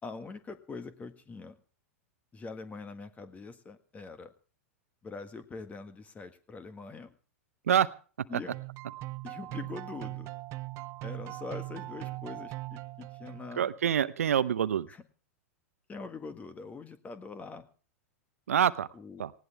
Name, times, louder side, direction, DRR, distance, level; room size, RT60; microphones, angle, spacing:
voice 1, 0.0-1.6 2.3-4.3 5.0-7.1 8.3-8.5 9.2-10.3 11.0-13.7 14.9-15.0 15.9-17.6 18.9-19.2, left 4 dB, 20° left, 10 dB, 1.7 m, -43 dB
sound 1, 8.5-13.7, right 19 dB, 40° right, 0.6 m, -40 dB
voice 2, 13.6-14.9 18.5-18.9 19.2-19.3, right 9 dB, 75° right, 14 dB, 0.8 m, -26 dB
19.0 x 17.5 x 3.5 m, 0.38 s
hypercardioid pair, 100°, 8 cm